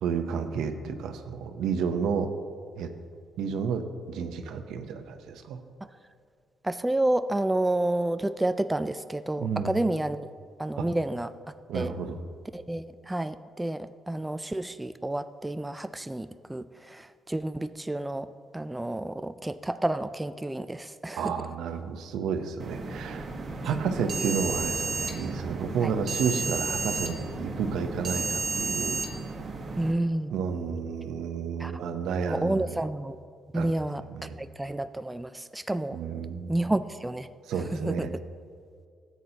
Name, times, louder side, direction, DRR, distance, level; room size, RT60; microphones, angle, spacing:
voice 1, 0.0-2.3 2.8-2.9 3.4-5.6 9.4-9.7 10.8-10.9 11.7-12.2 21.1-23.3 23.6-29.0 30.3-32.7 33.5-33.7 34.1-34.4 35.9-36.6 37.5-38.1, right 6 dB, 80° right, 7 dB, 0.7 m, -31 dB
voice 2, 6.6-10.3 10.6-11.3 11.7-11.9 12.5-18.3 18.5-21.3 23.8-24.3 25.8-25.9 29.8-30.3 31.6-31.7 32.3-33.2 33.5-36.0 36.5-38.1, right 1 dB, 10° right, 11 dB, 0.3 m, -30 dB
sound 1, 22.6-29.9, right 3 dB, 50° right, 1.2 m, -32 dB
13.5 x 8.2 x 2.9 m, 2.2 s
cardioid pair, 90°, 0 cm